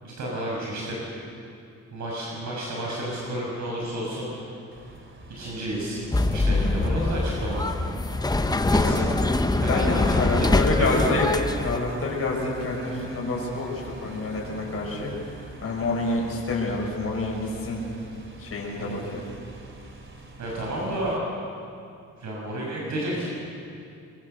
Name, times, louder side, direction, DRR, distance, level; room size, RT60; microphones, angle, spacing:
voice 1, 0.0-1.0 1.9-4.5 5.3-6.0 6.3-7.7 8.7-9.1 9.6-10.2 10.5-11.0 16.1-16.2 18.8-19.0 20.4-21.2 22.2-23.3, right 1 dB, 60° right, -3 dB, 6.1 m, -31 dB
sound 1, 4.7-21.2, right 2 dB, 40° right, 3.2 m, -44 dB
sound 2, 6.1-11.8, left 2 dB, 10° left, 0.9 m, -23 dB
voice 2, 9.7-11.3 11.6-15.1 15.6-17.8 18.4-19.2, left 2 dB, 45° left, -2 dB, 6.5 m, -28 dB
24.5 x 21.5 x 6.8 m, 2.6 s
cardioid pair, 110°, 32 cm